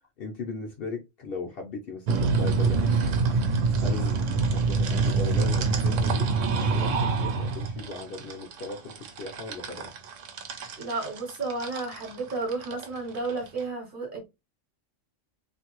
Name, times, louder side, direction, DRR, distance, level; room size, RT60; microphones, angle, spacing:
voice 1, 0.2-3.0 3.8-4.2 4.5-6.3 6.7-9.9, left 3 dB, 55° left, 0.7 m, -37 dB
sound 1, 2.1-13.6, right 4 dB, 75° right, 1.0 m, -26 dB
voice 2, 10.8-14.3, right 3 dB, 45° right, 1.1 m, -32 dB
2.7 x 2.5 x 2.9 m
omnidirectional pair, 1.3 m